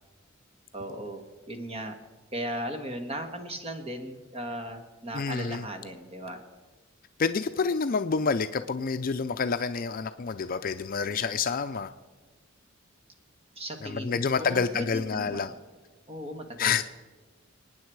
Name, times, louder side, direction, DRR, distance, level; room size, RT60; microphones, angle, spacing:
voice 1, 0.7-2.0 2.3-6.4 13.5-15.5 16.1-16.7, equal, 30° right, 6 dB, 1.7 m, -37 dB
voice 2, 5.1-5.6 7.2-11.9 13.8-15.5 16.6-16.8, left 5 dB, 45° left, 9 dB, 0.5 m, -28 dB
27.0 x 9.5 x 4.7 m, 1.4 s
head